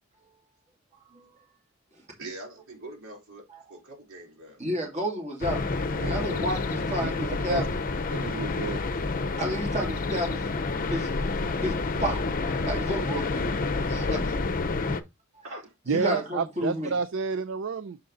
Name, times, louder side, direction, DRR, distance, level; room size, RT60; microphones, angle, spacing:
voice 1, 1.0-1.3 1.9-2.0 3.5-3.6 4.6-5.6 6.0-7.8 9.4-10.5 10.9-11.1 11.6-12.2 12.7-13.5 13.9-14.4 15.9-17.0, equal, 35° right, 2.4 m, -31 dB
voice 2, 2.2-4.6 15.4-15.7, right 2 dB, 80° right, 3.9 m, -45 dB
sound 1, 5.4-15.0, left 3 dB, 45° left, 0.6 m, -29 dB
voice 3, 6.0-6.4 7.5-7.6 8.1-8.8 15.9-18.0, right 5 dB, 65° right, 0.4 m, -30 dB
6.8 x 5.3 x 3.7 m
head